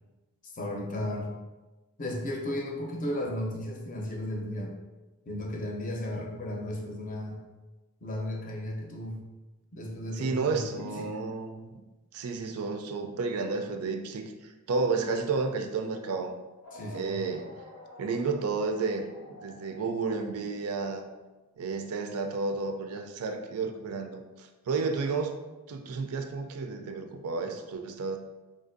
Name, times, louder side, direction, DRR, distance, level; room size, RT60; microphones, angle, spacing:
voice 1, 0.4-1.3 2.0-4.7 5.3-7.4 8.0-9.2 9.7-11.2 16.7-17.2, left 1 dB, 35° left, 0 dB, 0.5 m, -35 dB
voice 2, 10.2-11.8 12.1-16.3 16.9-17.4 18.0-19.0 19.3-21.0 21.6-25.4 25.7-28.2, right 4 dB, 85° right, 6 dB, 0.4 m, -31 dB
sound 1, 16.6-21.2, left 1 dB, 90° left, 0.7 m, -50 dB
4.2 x 2.5 x 2.5 m, 1.2 s
head